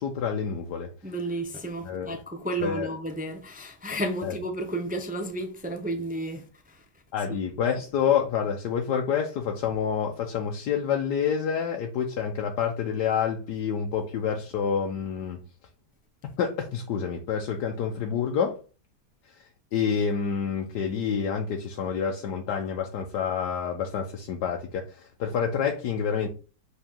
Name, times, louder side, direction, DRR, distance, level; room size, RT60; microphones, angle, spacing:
voice 1, 0.0-0.9 1.8-2.2 2.6-2.9 4.2-4.3 7.1-15.4 16.4-18.6 19.7-26.3, left 7 dB, 85° left, 1.4 m, -28 dB
voice 2, 1.0-6.8 7.3-7.4, right 1 dB, 10° right, 0.4 m, -32 dB
7.1 x 3.9 x 3.7 m
omnidirectional pair, 1.8 m